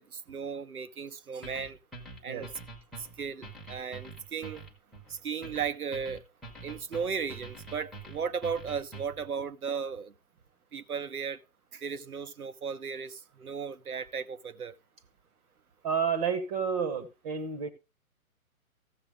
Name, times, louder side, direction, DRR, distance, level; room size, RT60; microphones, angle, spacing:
voice 1, 0.0-1.8 2.2-2.5 3.0-4.6 5.1-6.2 6.6-10.1 10.7-11.4 11.7-14.7, right 6 dB, 85° right, 1.0 m, -36 dB
sound 1, 1.4-9.3, right 3 dB, ahead, 1.1 m, -46 dB
voice 2, 15.8-17.7, right 6 dB, 25° right, 1.0 m, -30 dB
14.0 x 7.3 x 3.5 m
figure-of-eight pair, 140°, 43 cm